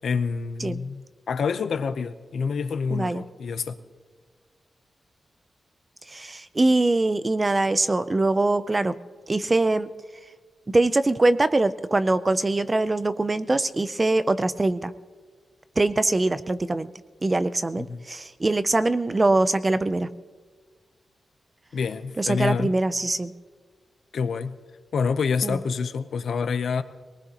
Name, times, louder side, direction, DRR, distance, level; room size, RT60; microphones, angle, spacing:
voice 1, 0.0-3.8 17.8-18.0 21.7-22.7 24.1-24.6 24.9-26.8, left 5 dB, 70° left, 11 dB, 0.6 m, -27 dB
voice 2, 2.9-3.2 6.1-8.9 9.3-9.9 10.7-14.9 15.8-16.9 17.2-20.1 22.2-23.3 25.4-25.6, right 2 dB, 20° right, 13 dB, 0.4 m, -23 dB
22.0 x 19.5 x 2.9 m, 1.5 s
wide cardioid pair, 170°, 0 cm